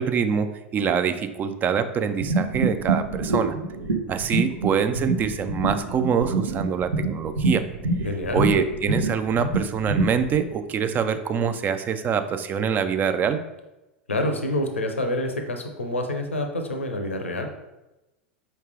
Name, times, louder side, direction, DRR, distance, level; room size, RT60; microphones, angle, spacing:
voice 1, 0.0-3.6 4.1-7.6 8.3-13.4, right 7 dB, 25° right, 9 dB, 0.3 m, -25 dB
sound 1, 2.2-10.4, right 2 dB, 80° right, 0.8 m, -26 dB
voice 2, 8.0-8.4 14.1-17.5, left 1 dB, 80° left, 4 dB, 0.7 m, -27 dB
4.8 x 3.2 x 3.2 m, 1.0 s
figure-of-eight pair, 85°, 7 cm